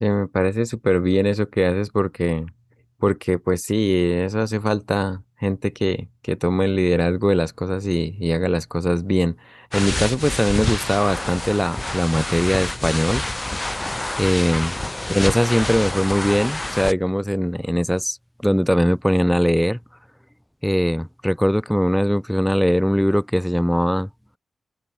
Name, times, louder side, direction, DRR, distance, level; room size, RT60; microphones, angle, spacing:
voice 1, 0.0-2.5 3.0-13.2 13.5-13.9 14.2-14.8 15.1-18.2 18.4-19.8 20.6-24.1, equal, 5° left, 1.5 m, -21 dB
sound 1, 9.7-16.9, left 1 dB, 20° left, 3.1 m, -27 dB
cardioid pair, 60°, 0 cm